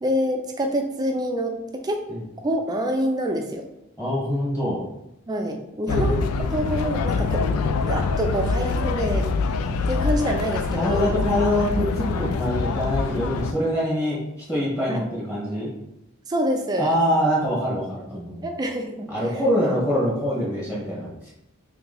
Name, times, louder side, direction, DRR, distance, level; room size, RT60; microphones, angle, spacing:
voice 1, 0.0-2.1 2.4-3.7 5.3-7.5 7.8-9.3 9.9-11.2 14.9-15.1 16.3-16.9 18.4-19.1, equal, 20° right, 3 dB, 0.4 m, -26 dB
voice 2, 4.0-4.8 5.9-6.1 9.6-9.8 10.7-15.7 16.8-18.5 19.1-21.1, equal, 15° left, -7 dB, 1.2 m, -24 dB
sound 1, 5.9-13.5, left 4 dB, 90° left, 0.3 m, -25 dB
3.0 x 2.8 x 3.7 m, 0.85 s
head